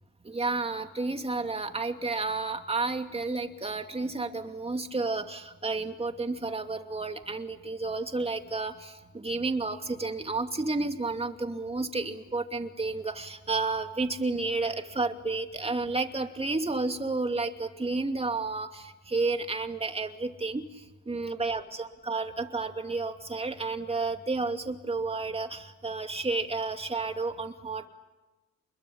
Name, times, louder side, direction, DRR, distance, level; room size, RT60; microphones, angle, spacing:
voice 1, 0.2-20.6 21.1-27.9, right 3 dB, 20° right, 6 dB, 2.7 m, -31 dB
29.0 x 22.0 x 8.7 m, 1.1 s
cardioid pair, 90°, 30 cm